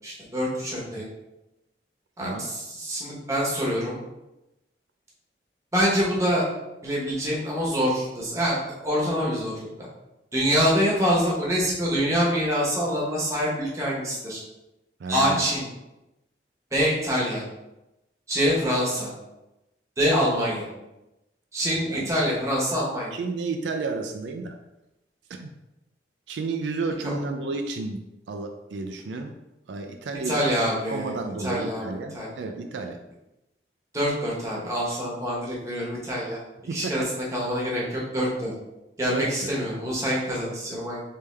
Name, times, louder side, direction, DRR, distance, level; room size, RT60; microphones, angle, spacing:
voice 1, 0.0-1.1 2.2-4.0 5.7-6.4 6.8-8.6 8.8-9.9 10.3-14.4 15.1-15.6 16.7-17.4 18.3-19.1 20.0-20.7 21.5-23.1 27.0-27.1 30.2-31.1 31.4-32.3 33.9-36.4 36.7-38.5 39.0-41.0, equal, 15° right, -5 dB, 1.1 m, -25 dB
voice 2, 2.2-2.5 15.0-15.5 21.9-22.1 23.1-24.6 25.3-25.5 26.3-29.3 29.7-30.5 30.9-33.0 36.7-37.1 39.0-39.5, right 3 dB, 85° right, 5 dB, 0.4 m, -32 dB
3.4 x 3.3 x 3.2 m, 0.95 s
head